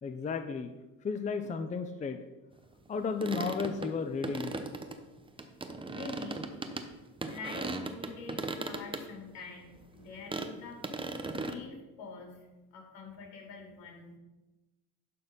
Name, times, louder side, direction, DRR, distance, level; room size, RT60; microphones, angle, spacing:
voice 1, 0.0-0.7 1.0-2.2 2.9-4.6, left 5 dB, 20° left, 8 dB, 0.6 m, -33 dB
sound 1, 2.9-6.9 7.2-9.0 9.4-9.5 9.8-9.9 10.3-10.5 10.8-11.5, right 3 dB, 15° right, 0.8 m, -37 dB
voice 2, 5.9-6.5 6.8-6.9 7.3-10.8 11.3-12.5 12.7-14.2, left 4 dB, 65° left, 0 dB, 3.2 m, -46 dB
11.5 x 4.3 x 5.2 m, 1.1 s
supercardioid pair, 95°, 39 cm